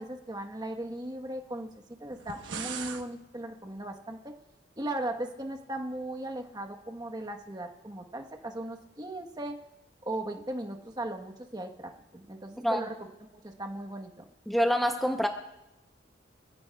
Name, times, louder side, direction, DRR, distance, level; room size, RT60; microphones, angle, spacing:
voice 1, 0.0-1.7 2.0-4.4 4.8-9.6 10.0-14.2, right 1 dB, 20° right, 4 dB, 1.2 m, -37 dB
sound 1, 2.1-3.1, right 6 dB, 75° right, 1.1 m, -38 dB
voice 2, 14.5-15.3, equal, ahead, 3 dB, 0.7 m, -26 dB
26.0 x 16.0 x 2.3 m, 0.94 s
head